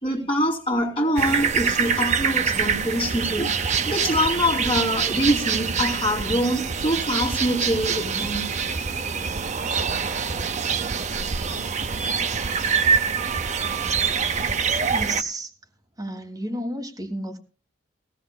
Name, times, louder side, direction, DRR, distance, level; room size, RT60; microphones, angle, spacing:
voice 1, 0.0-3.5 3.9-8.5, equal, 30° left, 2.6 m, -24 dB
sound 1, 1.2-15.2, right 6 dB, 35° right, 0.6 m, -25 dB
voice 2, 14.9-15.5 16.0-17.4, right 1 dB, 20° right, 1.6 m, -31 dB
18.0 x 16.0 x 2.2 m
head